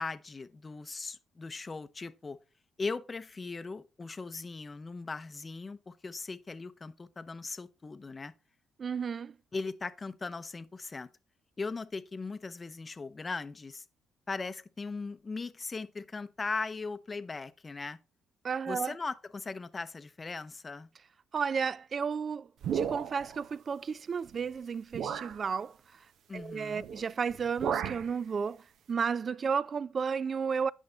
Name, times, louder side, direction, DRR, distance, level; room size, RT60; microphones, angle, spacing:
voice 1, 0.0-2.4 2.8-8.3 9.5-11.1 11.6-13.8 14.3-18.0 18.7-20.9 26.3-26.9, left 4 dB, 30° left, 0.6 m, -39 dB
voice 2, 8.8-9.3 18.4-19.0 21.3-22.5 22.7-25.7 26.3-28.6 28.9-30.7, right 6 dB, 45° right, 0.3 m, -32 dB
sound 1, 22.6-23.4 24.3-24.4 24.9-25.4 26.8-27.0 27.3-28.1, right 8 dB, 70° right, 0.7 m, -34 dB
8.7 x 5.4 x 3.9 m
cardioid pair, 90°, 0 cm